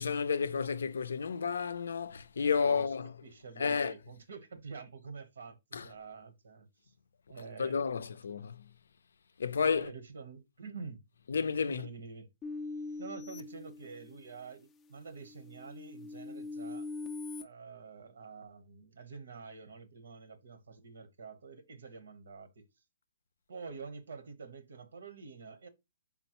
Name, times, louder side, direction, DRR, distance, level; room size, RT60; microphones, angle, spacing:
voice 1, 0.0-3.1 3.6-3.9 5.7-5.9 7.6-8.6 9.4-9.9 11.3-11.9, left 6 dB, 80° left, 0.5 m, -31 dB
voice 2, 2.4-2.8 3.2-6.9 7.3-7.8 9.5-11.0 11.7-12.3 13.0-16.9 17.4-22.7 23.5-25.7, right 5 dB, 80° right, 1.0 m, -47 dB
sound 1, 12.4-14.4 14.9-17.4, left 3 dB, 10° left, 0.4 m, -42 dB
4.2 x 3.8 x 2.9 m
hypercardioid pair, 170°, 0 cm